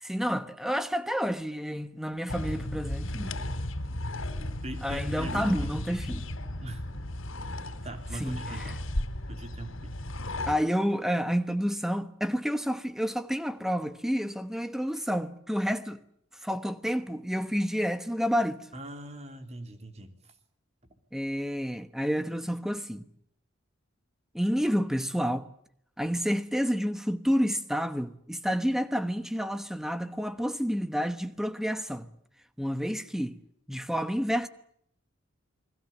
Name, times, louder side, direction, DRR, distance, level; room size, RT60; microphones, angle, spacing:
voice 1, 0.0-3.3 4.8-6.3 8.1-8.7 10.5-16.0 16.4-18.7 21.1-23.0 24.3-25.5 26.0-32.1 32.6-33.4 33.7-34.5, equal, ahead, 1.1 m, -29 dB
sound 1, 2.3-10.6, left 1 dB, 80° left, 2.9 m, -35 dB
voice 2, 4.6-5.8 6.6-6.9 7.8-8.8 9.3-10.0 18.7-20.3, right 1 dB, 30° right, 3.1 m, -41 dB
30.0 x 21.0 x 7.1 m
head